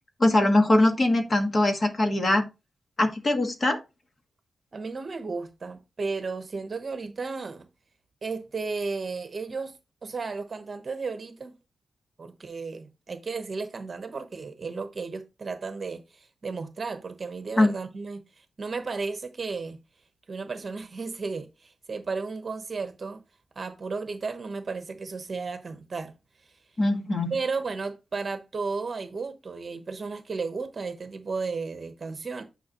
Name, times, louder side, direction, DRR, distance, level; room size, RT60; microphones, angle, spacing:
voice 1, 0.2-2.4 3.0-3.8 17.6-17.7 26.8-27.3, left 1 dB, 30° left, 1.5 m, -22 dB
voice 2, 4.7-7.7 8.2-9.8 10.0-11.5 12.2-19.8 20.3-23.2 23.6-26.1 27.3-32.4, right 4 dB, 35° right, 1.0 m, -34 dB
9.4 x 5.2 x 3.0 m
wide cardioid pair, 140°, 0 cm